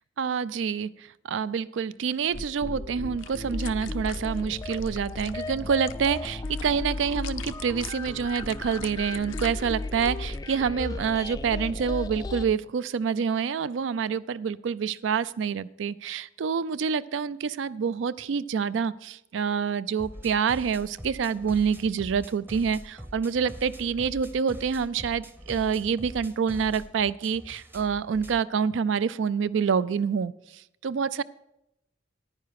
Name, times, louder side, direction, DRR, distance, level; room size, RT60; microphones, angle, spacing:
voice 1, 0.2-31.2, right 6 dB, 70° right, 18 dB, 0.4 m, -27 dB
sound 1, 2.2-10.4, left 10 dB, 85° left, 0.5 m, -46 dB
sound 2, 2.3-12.5, left 2 dB, 20° left, 0.4 m, -35 dB
sound 3, 20.0-28.3, equal, 10° right, 0.7 m, -44 dB
10.0 x 9.8 x 4.8 m, 0.85 s
head